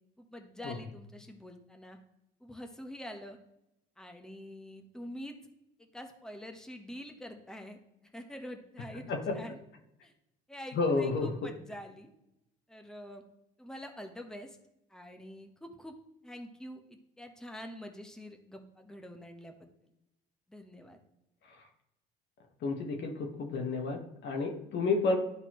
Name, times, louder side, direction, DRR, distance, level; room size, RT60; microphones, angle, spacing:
voice 1, 0.2-2.0 2.4-3.4 4.0-5.4 5.8-9.0 9.3-9.6 10.0-10.1 10.5-12.1 12.7-13.2 13.6-14.6 14.9-16.0 16.2-19.7 20.5-21.0, equal, 5° left, 4 dB, 1.1 m, -46 dB
voice 2, 9.1-9.4 10.7-11.3 21.5-21.6 22.6-25.2, left 3 dB, 65° left, 3 dB, 1.4 m, -31 dB
12.0 x 4.1 x 3.0 m, 0.87 s
supercardioid pair, 70°, 20 cm